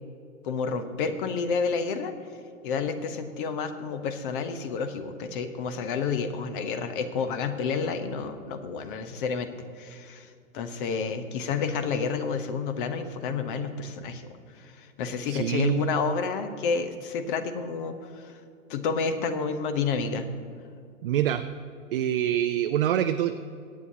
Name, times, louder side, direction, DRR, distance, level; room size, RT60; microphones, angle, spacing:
voice 1, 0.4-2.1 2.6-9.5 9.8-14.3 14.6-18.3 18.7-20.3, left 5 dB, 40° left, 9 dB, 1.0 m, -30 dB
voice 2, 15.3-15.8 21.0-21.4 21.9-23.3, right 11 dB, 45° right, 9 dB, 0.5 m, -25 dB
22.5 x 8.7 x 2.8 m, 2.5 s
figure-of-eight pair, 110°, 41 cm